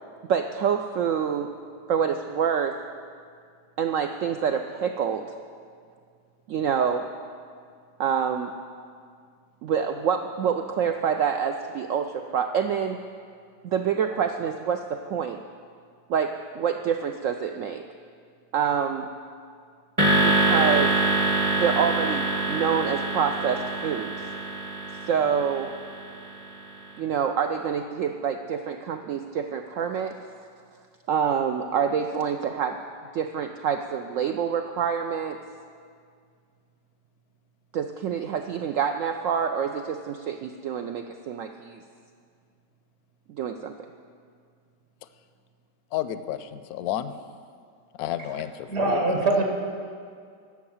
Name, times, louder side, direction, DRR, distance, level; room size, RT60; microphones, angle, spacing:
voice 1, 0.3-1.5 1.9-2.8 3.8-5.3 6.5-7.1 8.0-8.5 9.6-13.0 13.6-15.4 16.1-17.8 18.5-19.1 20.2-20.9 21.6-24.1 25.1-25.7 27.0-30.1 31.1-32.8 33.1-35.4 37.7-41.8 43.3-43.7, right 7 dB, 85° right, 6 dB, 0.7 m, -26 dB
sound 1, 20.0-26.4, right 2 dB, 25° right, 0.8 m, -25 dB
voice 2, 45.9-47.1 48.0-49.2, left 11 dB, 70° left, 12 dB, 0.9 m, -31 dB
voice 3, 48.7-49.4, right 2 dB, 60° right, 1 dB, 1.9 m, -22 dB
12.5 x 7.2 x 7.2 m, 2.1 s
omnidirectional pair, 1.9 m